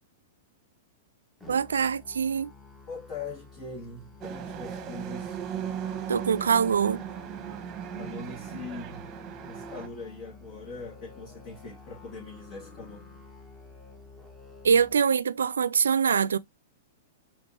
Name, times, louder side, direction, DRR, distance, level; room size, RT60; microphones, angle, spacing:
Musical instrument, 1.4-14.9, left 4 dB, 10° left, 1.1 m, -51 dB
voice 1, 1.5-2.5 6.1-7.1 14.6-16.4, right 6 dB, 85° right, 0.4 m, -24 dB
voice 2, 2.9-5.4 7.9-9.2 9.4-13.1, left 3 dB, 40° left, 1.5 m, -41 dB
sound 1, 4.2-9.9, right 8 dB, 30° right, 1.0 m, -37 dB
4.3 x 3.5 x 2.8 m
hypercardioid pair, 120°, 0 cm